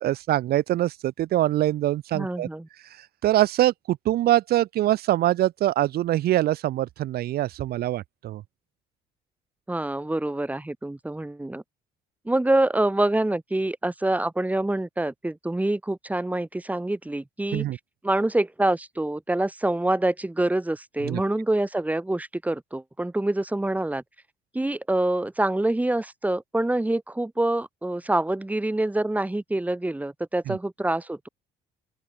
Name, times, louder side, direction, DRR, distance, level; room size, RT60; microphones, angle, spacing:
voice 1, 0.0-2.5 2.8-8.4 17.5-17.8 21.0-21.2 30.5-30.6, right 14 dB, 70° right, 1.3 m, -24 dB
voice 2, 2.1-2.7 9.7-11.6 12.2-17.6 18.0-24.0 24.5-31.3, right 1 dB, 10° right, 5.0 m, -26 dB
open air
cardioid pair, 110°, 17 cm